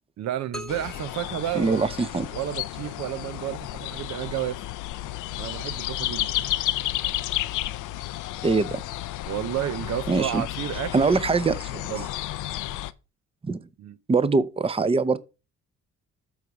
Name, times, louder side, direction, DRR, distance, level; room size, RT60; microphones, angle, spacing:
voice 1, 0.2-1.9 2.3-4.7 5.4-6.7 9.3-11.1 11.7-12.1 13.8-14.0, right 12 dB, 60° right, 0.6 m, -31 dB
sound 1, 0.5-2.4, left 2 dB, ahead, 1.0 m, -43 dB
sound 2, 0.7-12.9, left 15 dB, 80° left, 0.6 m, -32 dB
voice 2, 1.5-2.3 8.4-8.8 10.1-10.4 10.9-11.7 13.4-13.7 14.1-15.2, right 4 dB, 20° right, 0.6 m, -23 dB
8.1 x 4.7 x 4.9 m
cardioid pair, 90°, 30 cm